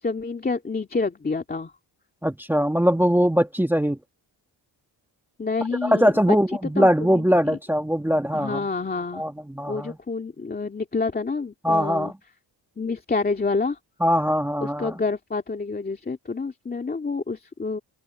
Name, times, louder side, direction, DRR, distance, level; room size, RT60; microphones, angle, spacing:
voice 1, 0.0-1.7 5.4-6.2 6.8-7.6 8.3-9.2 9.7-12.1 12.8-13.8 14.6-17.8, left 4 dB, 20° left, 2.3 m, -28 dB
voice 2, 2.2-4.0 5.8-8.7 9.1-10.0 11.6-12.1 14.0-15.0, equal, 5° right, 1.4 m, -21 dB
open air
cardioid pair, 130°, 43 cm